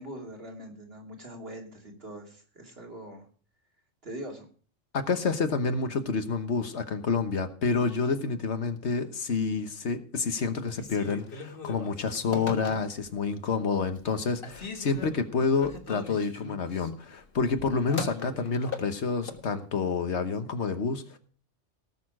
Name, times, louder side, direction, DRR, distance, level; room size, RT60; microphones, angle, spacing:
voice 1, 0.0-3.3 4.0-4.5, right 1 dB, 50° right, 1 dB, 3.0 m, -42 dB
voice 2, 4.9-21.2, left 4 dB, 65° left, 9 dB, 1.4 m, -28 dB
Telephone, 10.7-13.2 13.6-14.1 14.4-19.5, left 3 dB, 50° left, 1.5 m, -40 dB
18.0 x 6.8 x 4.8 m, 0.43 s
omnidirectional pair, 1.3 m